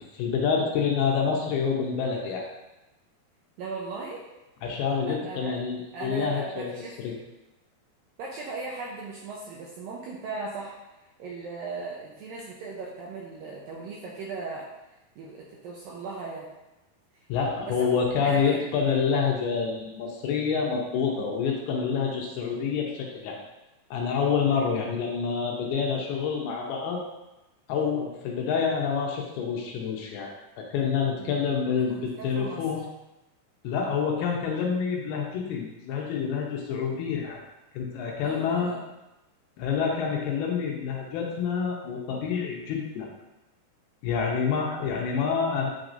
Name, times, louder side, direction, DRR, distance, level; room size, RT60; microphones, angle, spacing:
voice 1, 0.1-2.5 4.6-6.8 7.0-7.2 17.3-23.4 23.9-27.0 27.7-32.8 33.6-37.4 37.7-38.8 39.6-43.1 44.0-45.7, left 6 dB, 75° left, -1 dB, 2.6 m, -27 dB
voice 2, 3.6-4.3 5.1-5.5 5.9-6.9 8.2-10.8 11.2-16.5 17.7-18.6 31.2-31.6 31.9-32.6 33.8-34.0 38.2-38.9, right 3 dB, 75° right, -4 dB, 2.1 m, -38 dB
8.8 x 4.6 x 2.6 m, 0.98 s
omnidirectional pair, 4.9 m